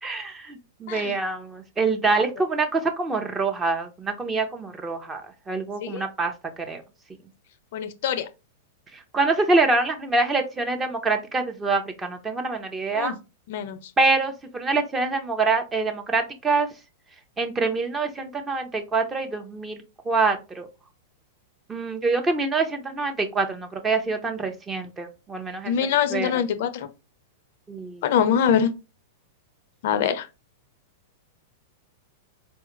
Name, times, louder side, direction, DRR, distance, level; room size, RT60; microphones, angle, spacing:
voice 1, 0.0-5.2 5.5-6.3 6.7-6.8 8.9-13.1 14.0-16.7 17.4-19.8 20.0-20.7 21.7-25.7 26.1-26.4 27.7-28.1, right 3 dB, 20° right, 0.7 m, -25 dB
voice 2, 7.7-8.3 12.9-13.2 13.5-13.8 25.7-26.9 28.0-28.7 29.8-30.3, left 8 dB, 60° left, 0.4 m, -23 dB
4.3 x 2.3 x 3.0 m
hypercardioid pair, 105°, 0 cm